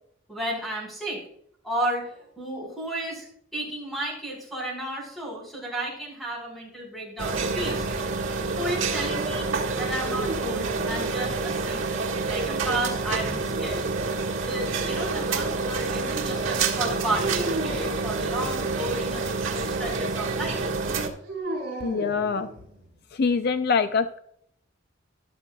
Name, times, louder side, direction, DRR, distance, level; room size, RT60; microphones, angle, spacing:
voice 1, 0.3-1.2 1.6-3.3 3.5-7.9 8.6-9.5 9.8-13.8 14.5-20.6, right 1 dB, ahead, -3 dB, 4.5 m, -32 dB
sound 1, 7.2-21.1, right 4 dB, 70° right, 1.6 m, -28 dB
sound 2, 10.0-11.6 13.2-14.3 17.2-18.0 21.2-22.9, right 2 dB, 55° right, 4.3 m, -35 dB
voice 2, 21.8-22.5 23.2-24.2, left 5 dB, 55° left, 10 dB, 0.4 m, -24 dB
13.5 x 11.0 x 2.3 m, 0.70 s
head